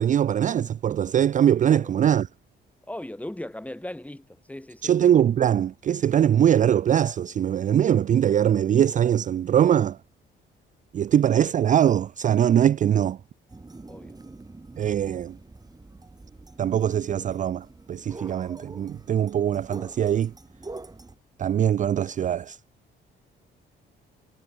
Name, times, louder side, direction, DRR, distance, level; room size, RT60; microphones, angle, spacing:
voice 1, 0.0-2.3 4.8-10.0 10.9-13.2 14.8-15.4 16.6-20.3 21.4-22.6, right 10 dB, 40° right, 0.4 m, -22 dB
voice 2, 2.9-5.0 13.9-14.2, left 1 dB, 5° left, 4.5 m, -38 dB
sound 1, 13.5-21.2, right 3 dB, 20° right, 7.7 m, -45 dB
cardioid pair, 90°, 20 cm